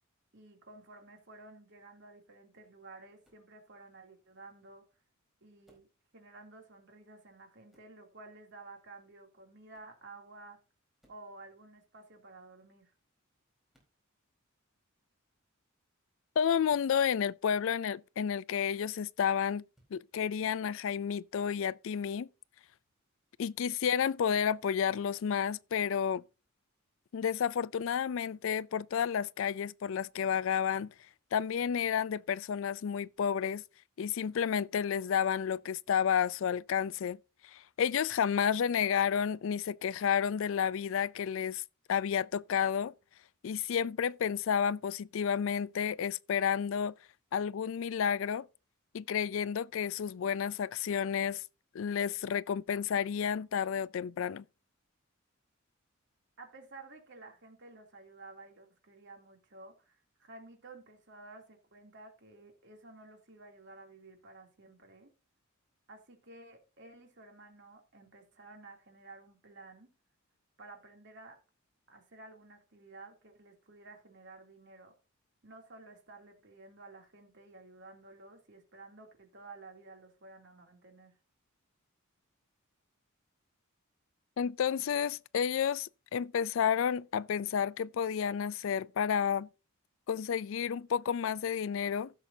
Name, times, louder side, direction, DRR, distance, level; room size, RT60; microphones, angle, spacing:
voice 1, 0.3-4.9 5.4-5.9 6.1-10.6 11.1-12.9 56.4-65.1 65.9-69.9 70.6-71.4 71.9-74.9 75.4-81.2, right 3 dB, 60° right, 2.9 m, -53 dB
sound 1, 3.2-3.5 5.6-6.0 7.7-8.0 9.7-10.0 11.0-11.3 13.7-14.0 16.7-16.9 19.7-20.0 21.5-21.7, equal, ahead, 4.2 m, -69 dB
voice 2, 16.4-19.6 19.9-22.3 23.4-26.2 27.1-30.9 31.3-33.6 34.0-37.2 37.4-41.6 41.9-42.9 43.4-46.9 47.3-48.5 48.9-51.4 51.7-54.4 84.4-89.5 90.1-92.1, left 7 dB, 65° left, 0.4 m, -31 dB
15.5 x 7.1 x 2.7 m
head